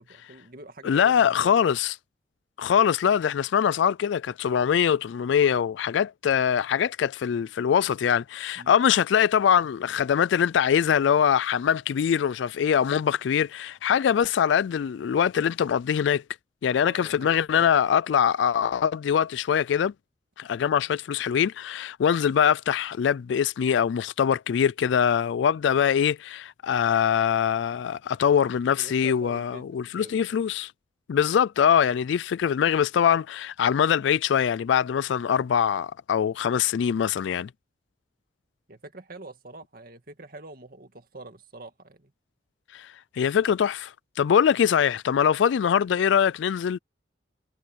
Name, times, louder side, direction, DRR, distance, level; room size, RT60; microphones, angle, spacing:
voice 1, 0.0-1.6 8.6-8.8 16.8-17.7 28.8-29.7 30.0-30.2 38.7-42.1 44.6-44.7, right 2 dB, 50° right, 2.2 m, -45 dB
voice 2, 0.8-1.9 2.6-16.2 16.6-19.9 20.4-30.7 31.1-37.5 42.7-46.8, left 8 dB, 75° left, 0.3 m, -23 dB
head